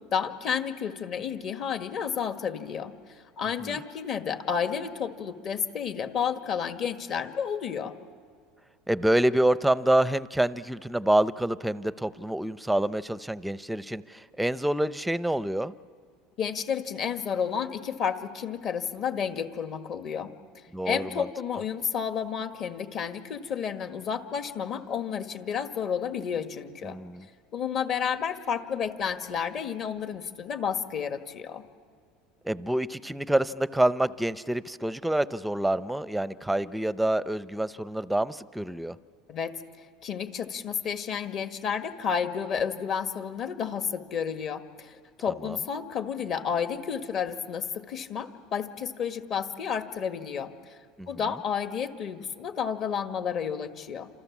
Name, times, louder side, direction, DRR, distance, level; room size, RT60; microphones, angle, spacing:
voice 1, 0.1-7.9 16.4-27.0 27.5-31.6 39.3-50.8 51.1-54.1, left 7 dB, 45° left, 7 dB, 1.7 m, -31 dB
voice 2, 8.9-15.7 20.7-21.3 26.8-27.2 32.5-38.9 51.0-51.1, right 1 dB, 5° right, 15 dB, 0.6 m, -27 dB
29.5 x 27.5 x 7.3 m, 2.1 s
supercardioid pair, 125°, 0 cm